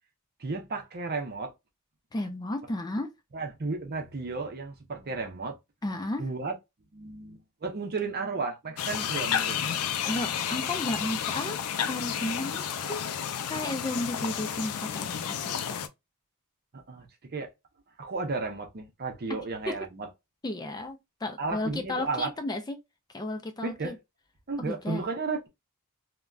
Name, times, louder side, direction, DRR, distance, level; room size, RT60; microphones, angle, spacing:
voice 1, 0.4-1.5 3.3-5.6 6.2-6.6 6.9-9.8 16.7-17.5 18.0-20.1 21.4-22.3 23.6-23.9 24.5-25.5, right 3 dB, 45° right, 0.7 m, -33 dB
voice 2, 2.1-3.1 5.8-6.2 10.0-13.1 13.5-15.4 15.7-15.9 20.4-22.8 23.1-23.9 24.6-25.0, left 1 dB, 20° left, 0.4 m, -33 dB
sound 1, 8.8-15.9, left 8 dB, 90° left, 0.4 m, -31 dB
3.3 x 2.2 x 2.3 m
head